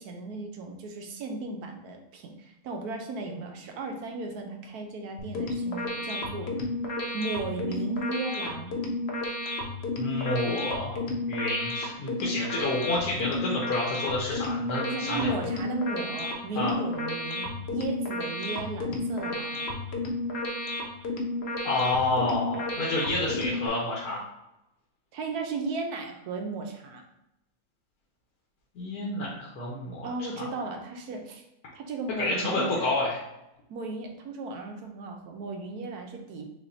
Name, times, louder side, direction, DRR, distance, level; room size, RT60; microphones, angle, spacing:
voice 1, 0.0-6.5 7.1-8.8 14.9-19.7 25.1-27.1 30.0-31.4 31.7-32.9 33.7-36.5, right 3 dB, 85° right, 3 dB, 1.2 m, -35 dB
sound 1, 5.2-23.7, left 2 dB, 55° left, 0.8 m, -32 dB
voice 2, 10.0-11.0 11.3-15.3 16.5-16.7 21.6-24.2 28.7-30.5 32.2-33.2, left 2 dB, 80° left, -5 dB, 1.4 m, -29 dB
6.6 x 2.7 x 2.6 m, 0.88 s
omnidirectional pair, 1.6 m